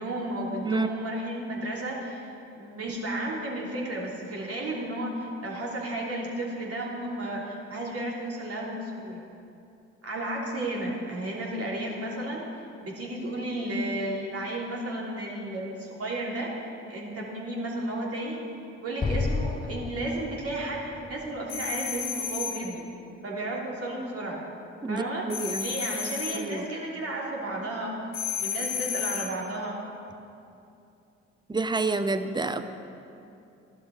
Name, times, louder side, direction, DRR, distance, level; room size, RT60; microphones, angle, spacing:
voice 1, 0.0-2.3 2.5-9.2 10.0-12.5 12.8-16.5 16.9-18.4 18.8-22.8 23.2-24.4 24.9-25.3 25.6-28.0 28.4-29.8, right 1 dB, 40° right, -3 dB, 3.3 m, -33 dB
Explosion, 19.0-22.3, left 4 dB, 15° left, 0.3 m, -32 dB
sound 1, 21.5-22.7 25.3-26.5 28.1-29.4, left 8 dB, 60° left, 1.9 m, -32 dB
voice 2, 24.8-25.7 26.3-26.7 31.5-32.6, right 3 dB, 10° right, 10 dB, 0.8 m, -28 dB
14.0 x 11.5 x 4.4 m, 2.7 s
hypercardioid pair, 45°, 36 cm